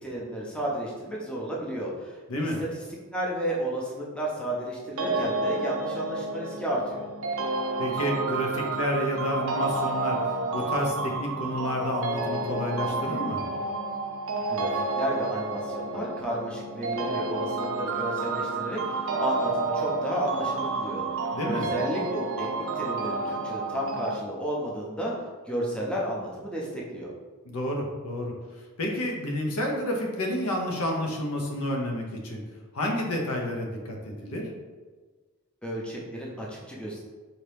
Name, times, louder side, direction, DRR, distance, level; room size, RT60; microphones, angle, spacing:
voice 1, 0.0-2.7 3.1-7.1 14.5-25.1 25.5-27.1 35.6-37.0, right 1 dB, 5° left, -4 dB, 0.6 m, -32 dB
voice 2, 2.3-2.6 7.8-13.4 21.3-21.7 27.4-28.3 28.8-32.4 32.7-34.5, left 1 dB, 85° left, 0 dB, 0.8 m, -30 dB
sound 1, 5.0-24.2, right 3 dB, 65° right, 0.4 m, -30 dB
4.2 x 2.8 x 3.3 m, 1.4 s
head